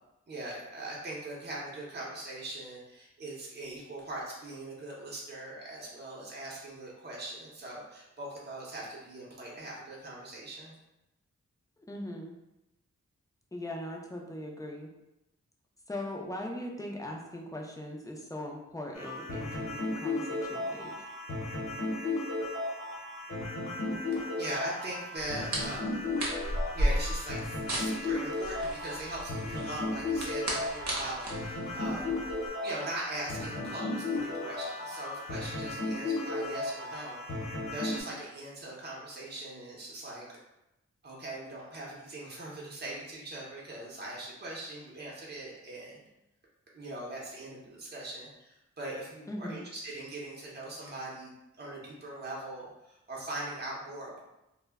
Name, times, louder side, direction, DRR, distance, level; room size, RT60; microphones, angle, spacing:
voice 1, 0.3-10.7 24.4-26.0 26.7-32.1 32.6-37.4 37.7-40.3 41.0-46.0 46.7-51.3 51.6-54.2, right 1 dB, 35° right, -4 dB, 0.7 m, -41 dB
voice 2, 11.9-12.4 13.5-14.9 15.9-21.1 49.3-49.7, left 1 dB, 10° left, 0 dB, 0.4 m, -40 dB
sound 1, 18.9-38.0, left 2 dB, 70° left, 0.9 m, -35 dB
sound 2, 25.2-32.5, right 1 dB, 70° right, 0.7 m, -35 dB
2.1 x 2.1 x 3.4 m, 0.92 s
wide cardioid pair, 80°, 29 cm